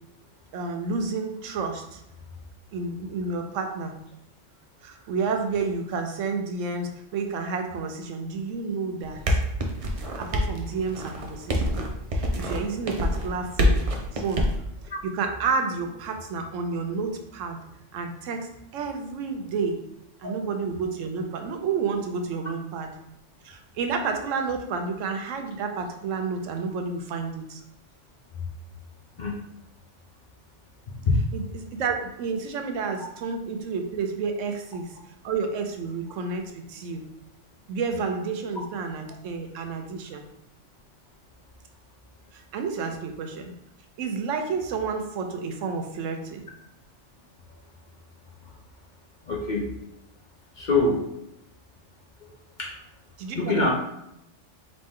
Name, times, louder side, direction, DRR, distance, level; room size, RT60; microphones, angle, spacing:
voice 1, 0.5-2.0 2.7-4.0 4.8-9.4 10.2-11.8 12.1-13.8 14.1-14.5 15.0-17.6 17.9-19.8 20.2-22.9 23.4-27.6 31.3-35.0 35.2-37.0 37.7-40.2 42.3-43.5 44.0-46.4 53.2-53.7, right 4 dB, 85° right, 5 dB, 1.0 m, -30 dB
sound 1, 9.0-14.6, equal, 45° right, 0.4 m, -26 dB
voice 2, 49.2-49.7 50.5-51.1 52.6-52.7 53.3-53.7, left 3 dB, 50° left, -1 dB, 0.6 m, -25 dB
4.2 x 2.8 x 3.6 m, 0.81 s
omnidirectional pair, 1.3 m